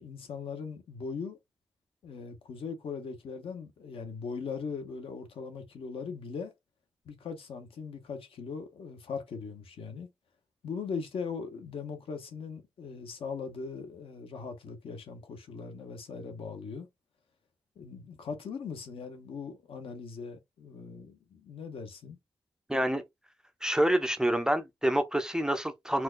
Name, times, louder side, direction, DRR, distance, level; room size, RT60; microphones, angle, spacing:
voice 1, 0.0-1.4 2.0-6.5 7.0-10.1 10.6-16.9 17.8-22.2, left 5 dB, 75° left, 0.8 m, -40 dB
voice 2, 22.7-23.0 23.6-26.0, right 1 dB, 5° right, 0.3 m, -27 dB
4.3 x 2.2 x 2.3 m
wide cardioid pair, 175°, 9 cm